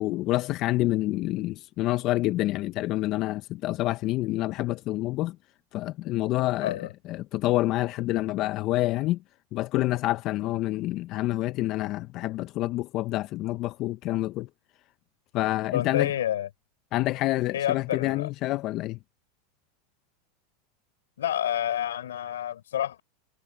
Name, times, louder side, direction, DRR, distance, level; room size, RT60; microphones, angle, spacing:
voice 1, 0.0-5.4 5.7-9.2 9.5-14.5 15.3-16.1 16.9-19.0, left 17 dB, 50° left, 0.9 m, -27 dB
voice 2, 15.7-16.5 17.5-18.3 21.2-23.0, left 11 dB, 85° left, 5.7 m, -29 dB
hypercardioid pair, 105°, 0 cm